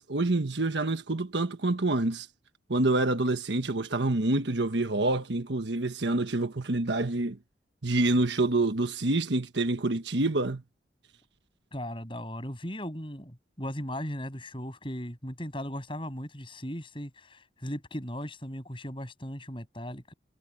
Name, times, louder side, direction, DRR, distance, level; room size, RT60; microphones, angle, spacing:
voice 1, 0.0-2.3 2.7-7.4 7.8-10.6, right 2 dB, 80° right, 1.3 m, -27 dB
voice 2, 11.7-20.1, equal, 30° left, 7.6 m, -37 dB
head